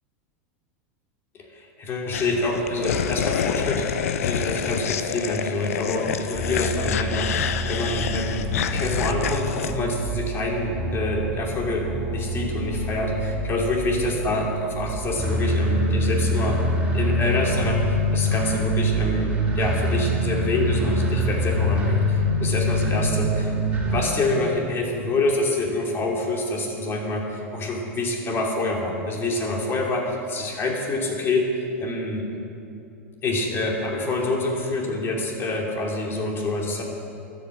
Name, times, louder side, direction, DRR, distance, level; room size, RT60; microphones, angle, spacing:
voice 1, 1.5-16.6 16.9-23.5 23.9-32.3 33.2-36.8, left 2 dB, 30° left, 0 dB, 2.8 m, -26 dB
sound 1, 2.1-9.7, left 8 dB, 80° left, 0.6 m, -28 dB
sound 2, 6.4-24.0, equal, 15° right, 3.4 m, -25 dB
12.5 x 8.3 x 7.4 m, 2.7 s
hypercardioid pair, 110°, 8 cm